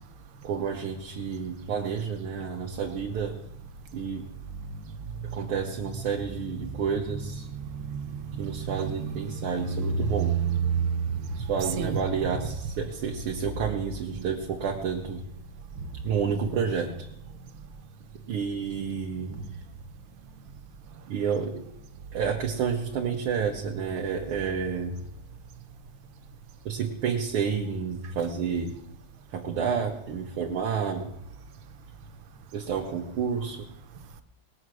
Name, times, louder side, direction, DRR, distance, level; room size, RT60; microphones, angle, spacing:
voice 1, 0.4-3.4 3.9-4.3 5.3-7.5 8.4-10.4 11.3-15.2 16.0-16.9 18.3-19.4 21.1-21.6 22.1-24.9 26.7-28.7 29.3-31.1 32.5-33.6, right 6 dB, 90° right, 2.0 m, -30 dB
voice 2, 7.6-8.0 8.4-11.0 11.6-12.0 19.3-19.4, right 6 dB, 70° right, 1.5 m, -29 dB
19.0 x 7.7 x 6.2 m
omnidirectional pair, 2.3 m